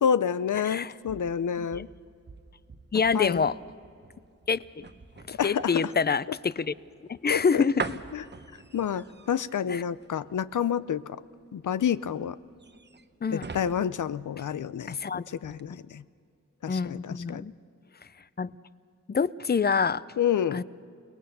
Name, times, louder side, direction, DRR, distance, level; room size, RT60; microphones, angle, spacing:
voice 1, 0.0-1.9 3.1-3.5 5.4-5.7 7.3-7.6 8.1-8.2 8.7-11.2 11.5-12.4 13.3-15.0 15.3-16.0 16.6-17.4 20.2-20.6, left 8 dB, 80° left, 16 dB, 0.6 m, -28 dB
sound 1, 0.7-15.1 15.4-15.6, right 4 dB, 35° right, 0.8 m, -43 dB
voice 2, 2.9-3.6 4.5-4.6 5.3-6.7 7.1-7.8 9.7-9.8 13.2-13.5 14.9-15.2 16.7-17.5 18.4-18.5 19.1-20.0 20.5-20.6, left 5 dB, 35° left, 18 dB, 0.5 m, -26 dB
29.5 x 19.5 x 6.7 m, 2.4 s
wide cardioid pair, 110°, 30 cm